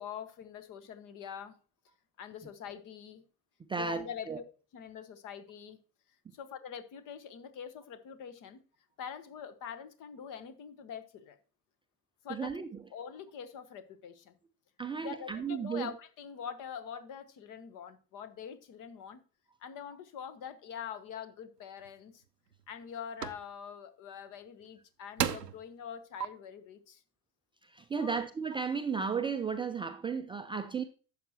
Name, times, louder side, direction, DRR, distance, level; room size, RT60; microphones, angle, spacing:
voice 1, 0.0-1.6 2.2-3.2 3.8-4.4 4.7-5.8 6.3-8.6 9.0-11.4 12.2-12.6 12.9-14.4 15.0-19.2 19.6-22.2 22.7-27.0 28.0-28.2, left 8 dB, 40° left, 1.2 m, -44 dB
voice 2, 3.7-4.4 12.3-12.7 14.8-15.9 27.7-30.8, right 5 dB, 10° right, 0.5 m, -34 dB
sound 1, 21.8-21.9 22.5-22.8 23.2-23.4 24.6-24.7 25.2-25.6 26.2-26.3, right 8 dB, 90° right, 0.6 m, -33 dB
11.5 x 7.4 x 2.9 m
figure-of-eight pair, 65°, 47 cm